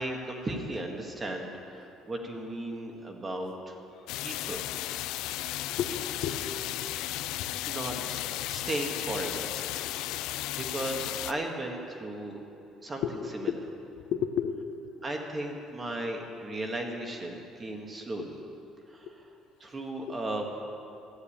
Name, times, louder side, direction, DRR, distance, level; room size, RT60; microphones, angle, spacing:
voice 1, 0.0-3.8 4.2-4.6 7.7-8.2 8.5-9.5 10.5-12.4 12.8-13.0 13.4-13.5 15.0-18.4 18.9-19.1 19.6-20.5, right 1 dB, 20° right, 2 dB, 1.5 m, -35 dB
sound 1, 4.1-11.3, left 15 dB, 90° left, 0.4 m, -34 dB
voice 2, 5.1-6.5 6.8-6.9 8.0-8.3 9.8-10.2 12.2-12.3 13.0-13.7 14.1-14.8 18.2-18.3 18.8-19.2 20.1-20.2, left 8 dB, 65° left, 7 dB, 0.8 m, -35 dB
13.5 x 9.4 x 8.5 m, 2.7 s
cardioid pair, 160°, 0 cm